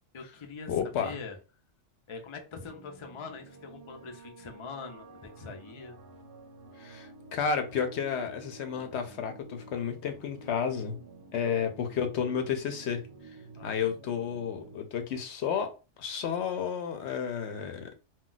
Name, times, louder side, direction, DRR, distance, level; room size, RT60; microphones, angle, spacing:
voice 1, 0.1-1.4 2.1-6.0 13.6-13.8, left 4 dB, 50° left, 0.3 m, -43 dB
voice 2, 0.7-1.2 6.8-11.0 11.3-13.0 13.6-15.7 16.0-17.9, left 7 dB, 65° left, 0.8 m, -31 dB
sound 1, 2.5-14.8, right 3 dB, 75° right, 0.9 m, -50 dB
2.3 x 2.2 x 3.8 m
omnidirectional pair, 1.3 m